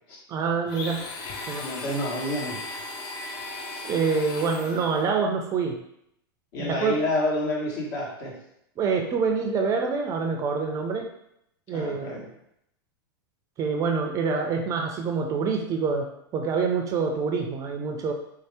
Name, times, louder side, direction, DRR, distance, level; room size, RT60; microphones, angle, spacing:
voice 1, 0.3-1.0 1.5-1.6 3.8-5.8 6.6-7.0 8.8-11.1 11.7-12.2 13.6-18.1, right 5 dB, 25° right, 3 dB, 0.4 m, -26 dB
Domestic sounds home sounds, 0.7-5.1, left 3 dB, 35° left, 0.6 m, -37 dB
voice 2, 1.6-2.6 6.5-8.3 11.7-12.3, left 1 dB, 55° left, -3 dB, 1.4 m, -29 dB
3.4 x 2.8 x 3.3 m, 0.76 s
hypercardioid pair, 130°, 12 cm